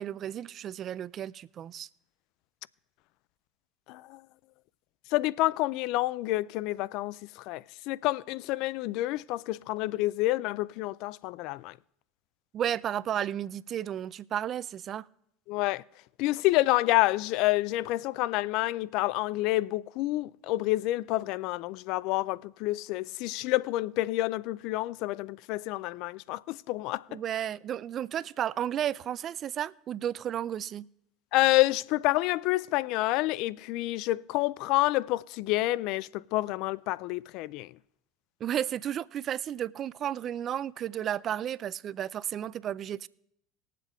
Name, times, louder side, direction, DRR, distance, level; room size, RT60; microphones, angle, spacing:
voice 1, 0.0-1.9 12.5-15.1 27.1-30.9 38.4-43.1, right 10 dB, 45° right, 0.4 m, -33 dB
voice 2, 3.9-4.2 5.1-11.8 15.5-15.8 16.2-27.2 31.3-37.7, left 18 dB, 60° left, 0.4 m, -28 dB
20.0 x 7.5 x 3.5 m
hypercardioid pair, 75°, 0 cm